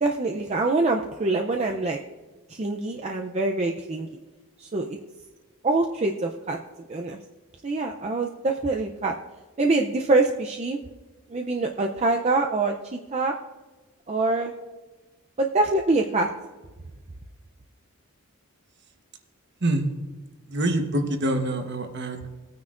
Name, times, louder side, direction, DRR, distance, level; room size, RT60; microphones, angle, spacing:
voice 1, 0.0-2.0 2.6-4.1 4.7-5.0 5.6-6.6 6.9-7.2 7.6-9.1 9.6-10.8 11.3-13.3 14.1-14.5 15.4-16.3, right 2 dB, 30° right, 2 dB, 0.5 m, -24 dB
voice 2, 20.5-22.3, right 1 dB, 50° right, 5 dB, 1.1 m, -25 dB
19.5 x 9.4 x 2.5 m, 1.2 s
head